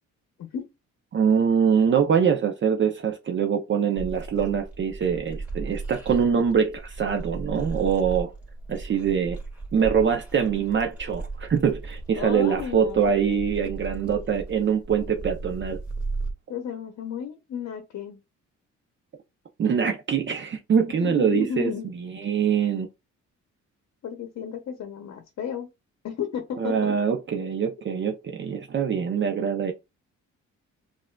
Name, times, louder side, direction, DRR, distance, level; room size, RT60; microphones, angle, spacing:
voice 1, 0.4-0.7 12.1-13.1 16.5-18.2 21.0-21.9 24.0-25.7 26.0-27.0, left 8 dB, 55° left, 0.8 m, -33 dB
voice 2, 1.1-8.3 8.7-9.4 9.7-15.8 19.6-21.7 22.0-22.9 26.6-29.7, right 7 dB, 40° right, 0.6 m, -24 dB
sound 1, 4.0-16.3, right 3 dB, 5° right, 1.9 m, -36 dB
5.5 x 2.5 x 2.2 m
cardioid pair, 90°, 30 cm